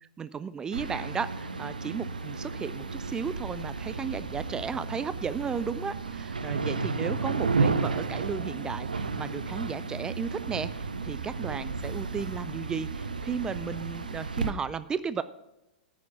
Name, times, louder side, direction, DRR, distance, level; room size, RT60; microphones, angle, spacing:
voice 1, 0.0-15.2, right 6 dB, 15° right, 14 dB, 0.4 m, -34 dB
sound 1, 0.7-14.5, right 4 dB, 75° right, 0.9 m, -32 dB
14.0 x 6.3 x 5.6 m, 0.94 s
figure-of-eight pair, 100°, 5 cm